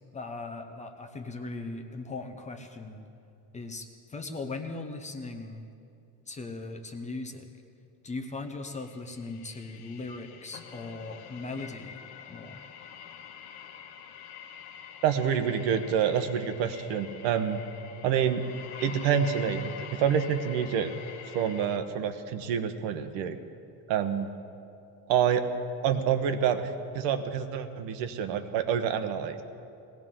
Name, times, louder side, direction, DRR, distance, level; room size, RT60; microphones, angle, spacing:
voice 1, 0.1-3.0 3.5-5.7 6.3-7.5 8.0-12.0 12.3-12.6, left 3 dB, 15° left, 5 dB, 0.6 m, -39 dB
Dark Atmos Suspense, 8.6-21.8, left 8 dB, 75° left, 1.1 m, -46 dB
voice 2, 15.0-17.6 18.0-18.4 18.8-19.6 20.0-20.9 21.3-23.4 23.9-24.3 25.1-25.5 25.8-26.6 26.9-29.4, right 8 dB, 80° right, 8 dB, 1.2 m, -27 dB
20.0 x 16.5 x 3.8 m, 2.6 s
cardioid pair, 175°, 44 cm